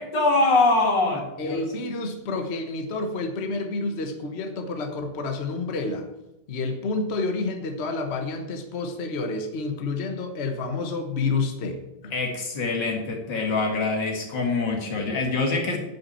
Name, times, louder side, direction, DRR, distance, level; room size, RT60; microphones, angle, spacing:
voice 1, 0.0-1.6 12.1-15.8, left 3 dB, 75° left, 1 dB, 2.7 m, -24 dB
voice 2, 1.4-6.1 6.5-12.1, left 3 dB, 40° left, 5 dB, 1.3 m, -29 dB
10.5 x 6.0 x 8.7 m, 0.95 s
omnidirectional pair, 1.9 m